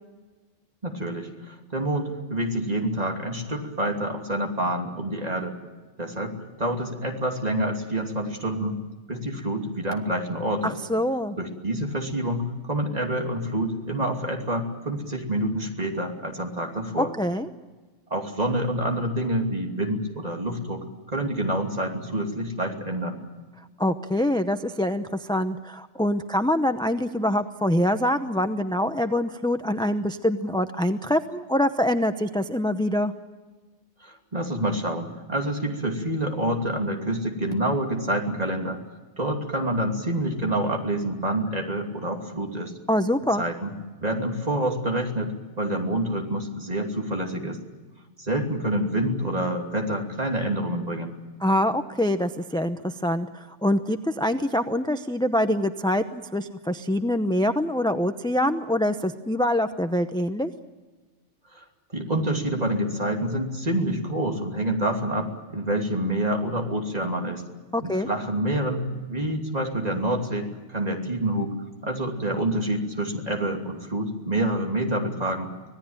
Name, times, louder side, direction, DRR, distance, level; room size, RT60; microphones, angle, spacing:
voice 1, 0.8-5.5 6.0-8.8 9.1-10.8 11.4-17.1 18.1-23.2 34.0-38.8 39.2-42.7 43.4-43.7 44.0-47.6 48.2-51.1 61.5-61.6 61.9-67.4 67.8-71.6 71.8-75.5, right 1 dB, 35° right, 1 dB, 3.0 m, -27 dB
voice 2, 10.6-11.4 17.0-17.5 23.8-33.1 42.9-43.4 51.4-60.5 67.7-68.1, left 1 dB, 5° left, 8 dB, 0.6 m, -25 dB
26.0 x 17.5 x 8.9 m, 1.3 s
omnidirectional pair, 1.2 m